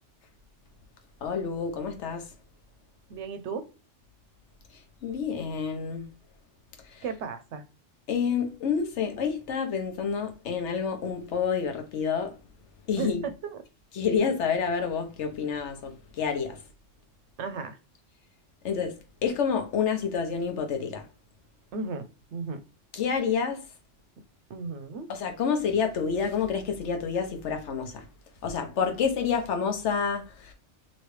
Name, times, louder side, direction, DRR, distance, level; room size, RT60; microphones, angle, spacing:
voice 1, 1.2-2.2 5.0-6.1 8.1-12.3 12.9-13.2 14.0-16.6 18.6-18.9 19.2-21.0 22.9-23.6 25.1-28.0 28.4-30.5, left 6 dB, 70° left, 1.0 m, -28 dB
voice 2, 3.1-3.6 7.0-7.6 13.0-13.3 17.4-17.8 21.7-22.0 22.3-22.6 24.5-25.1, right 5 dB, 70° right, 0.8 m, -34 dB
3.0 x 2.8 x 3.0 m
omnidirectional pair, 1.3 m